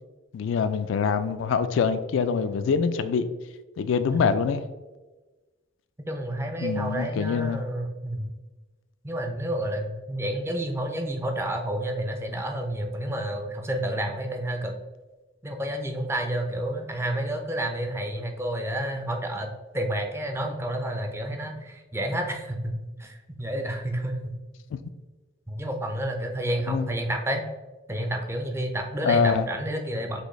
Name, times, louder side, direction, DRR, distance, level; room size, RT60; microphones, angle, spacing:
voice 1, 0.3-3.3 3.8-4.6 6.6-7.6 24.7-24.8 26.7-26.9 29.0-29.5, left 6 dB, 70° left, 11 dB, 0.3 m, -24 dB
voice 2, 6.1-8.3 9.0-14.7 15.4-22.7 23.0-24.4 25.5-27.5 27.9-30.2, right 1 dB, 15° right, 4 dB, 0.4 m, -30 dB
6.2 x 2.6 x 3.1 m, 1.2 s
head